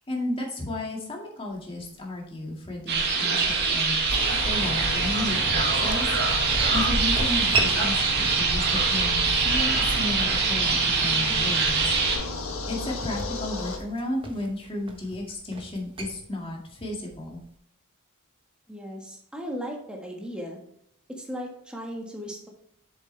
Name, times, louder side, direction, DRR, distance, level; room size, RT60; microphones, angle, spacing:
voice 1, 0.1-6.1 6.5-11.9 12.7-17.4, left 1 dB, 25° left, -1 dB, 2.1 m, -33 dB
sound 1, 1.5-17.6, right 3 dB, 25° right, 1.2 m, -39 dB
sound 2, 2.9-12.2, right 4 dB, 50° right, 1.9 m, -24 dB
sound 3, 4.1-13.8, left 2 dB, 70° left, 1.3 m, -34 dB
voice 2, 18.7-20.6 21.1-22.5, equal, 5° right, 0 dB, 1.5 m, -36 dB
7.6 x 7.2 x 3.4 m, 0.70 s
head